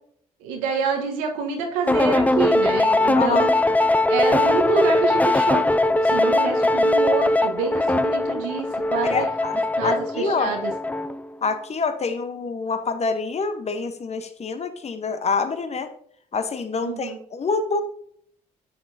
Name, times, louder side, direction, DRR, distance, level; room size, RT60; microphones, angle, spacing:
voice 1, 0.4-3.5 4.1-5.7 6.0-9.3 9.8-10.7 16.8-17.2, right 5 dB, 85° right, 3 dB, 1.2 m, -27 dB
sound 1, 1.9-11.3, left 2 dB, 10° left, 0.4 m, -20 dB
voice 2, 3.1-3.5 9.0-9.6 9.8-10.5 11.4-15.9 16.3-17.8, left 4 dB, 40° left, 9 dB, 1.0 m, -26 dB
7.7 x 6.3 x 2.7 m, 0.63 s
hypercardioid pair, 45°, 18 cm